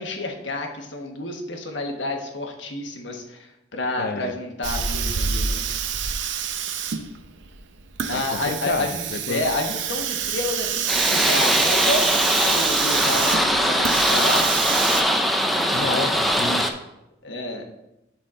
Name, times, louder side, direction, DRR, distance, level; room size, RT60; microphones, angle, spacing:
voice 1, 0.0-5.6 5.9-6.2 8.1-14.9 17.2-17.6, left 2 dB, 80° left, 3 dB, 1.2 m, -30 dB
voice 2, 4.0-4.3 8.1-9.5 15.7-16.7, left 4 dB, 55° left, 12 dB, 0.5 m, -30 dB
Hiss, 4.6-15.0, right 7 dB, 90° right, 0.6 m, -27 dB
sound 1, 10.9-16.7, equal, ahead, 0.5 m, -21 dB
11.0 x 4.2 x 3.7 m, 0.90 s
head